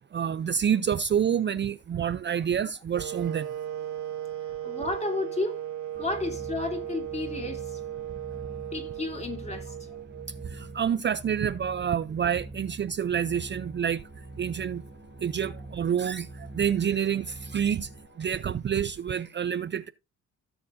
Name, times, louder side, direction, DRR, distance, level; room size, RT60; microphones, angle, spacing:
voice 1, 0.1-3.5 6.0-6.1 10.5-14.0 14.4-14.8 15.2-17.9 18.2-19.9, right 8 dB, 35° right, 0.5 m, -28 dB
sound 1, 2.9-10.9, right 11 dB, 75° right, 1.7 m, -37 dB
voice 2, 4.6-5.6 6.0-7.8 8.7-9.9, left 2 dB, 20° left, 3.4 m, -32 dB
sound 2, 5.9-18.1, right 2 dB, 20° right, 1.0 m, -44 dB
Wind instrument woodwind instrument, 13.1-18.5, left 1 dB, 70° left, 6.6 m, -58 dB
17.0 x 7.0 x 2.6 m
cardioid pair, 90°, 30 cm